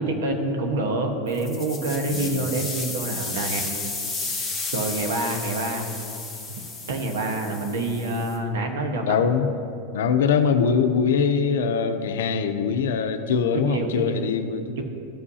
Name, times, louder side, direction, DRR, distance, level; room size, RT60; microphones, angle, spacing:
voice 1, 0.0-3.6 4.7-5.9 6.9-9.2 13.5-14.2 14.8-14.9, right 2 dB, 75° right, 4 dB, 1.2 m, -27 dB
sound 1, 1.3-8.4, left 3 dB, 5° right, 1.4 m, -33 dB
voice 2, 2.1-2.4 9.0-9.5 9.9-14.8, left 6 dB, 90° left, 8 dB, 0.6 m, -22 dB
14.0 x 5.4 x 2.8 m, 2.7 s
supercardioid pair, 170°, 0 cm